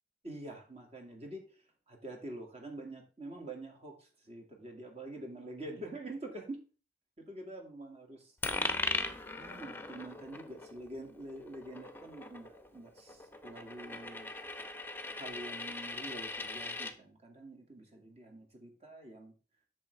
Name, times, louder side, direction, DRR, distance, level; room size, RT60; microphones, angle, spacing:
voice 1, 0.2-1.4 1.9-3.9 4.3-6.6 7.3-8.3 9.4-14.3 15.2-19.3, right 1 dB, 35° right, 2 dB, 2.2 m, -46 dB
Coin (dropping), 8.4-16.9, left 3 dB, 10° left, 0.7 m, -39 dB
8.6 x 6.6 x 3.4 m, 0.36 s
head